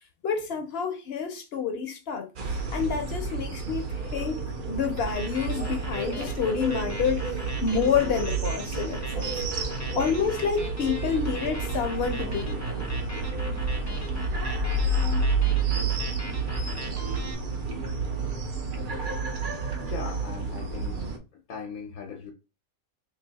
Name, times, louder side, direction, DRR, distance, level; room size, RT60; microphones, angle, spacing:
voice 1, 0.2-2.3 2.7-3.9 4.1-7.3 7.6-9.4 9.9-12.8, left 6 dB, 55° left, 0.8 m, -28 dB
sound 1, 2.4-21.2, right 3 dB, 60° right, 0.5 m, -30 dB
sound 2, 5.0-17.3, left 1 dB, 25° left, 0.4 m, -39 dB
voice 2, 19.8-21.0 21.3-22.3, left 6 dB, 85° left, 1.2 m, -39 dB
2.7 x 2.6 x 3.9 m
omnidirectional pair, 1.5 m